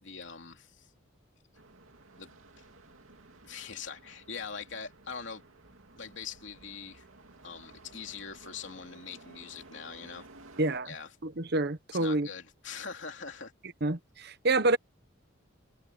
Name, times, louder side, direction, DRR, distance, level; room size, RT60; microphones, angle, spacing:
voice 1, 0.0-0.9 2.2-2.4 3.4-5.4 6.0-7.1 7.4-10.3 10.8-11.1 12.0-13.5, left 6 dB, 60° left, 3.2 m, -42 dB
sound 1, 1.5-10.8, right 2 dB, 85° right, 2.6 m, -55 dB
voice 2, 10.6-10.9 11.2-12.3 13.8-14.8, right 2 dB, 50° right, 0.9 m, -28 dB
head